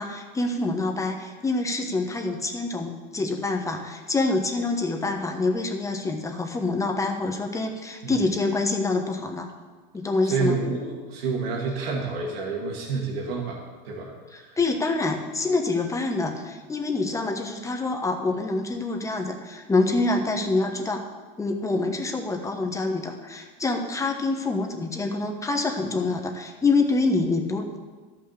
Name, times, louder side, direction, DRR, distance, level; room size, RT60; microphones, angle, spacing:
voice 1, 0.0-9.5 9.9-10.6 14.6-21.0 21.4-27.8, left 3 dB, 10° left, 3 dB, 1.2 m, -26 dB
voice 2, 10.2-13.6 13.8-14.6, right 4 dB, 90° right, -2 dB, 2.5 m, -29 dB
13.0 x 5.9 x 6.7 m, 1.4 s
supercardioid pair, 135°, 29 cm